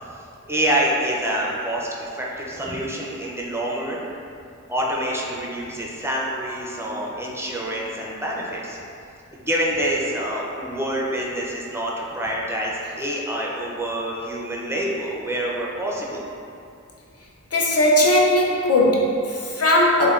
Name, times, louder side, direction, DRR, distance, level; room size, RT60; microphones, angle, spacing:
voice 1, 0.5-4.0 4.7-8.8 9.3-16.2, right 1 dB, 10° right, -4 dB, 0.4 m, -26 dB
voice 2, 17.5-20.1, left 1 dB, 50° left, -2 dB, 0.5 m, -18 dB
3.1 x 2.1 x 2.4 m, 2.5 s
wide cardioid pair, 45°, 31 cm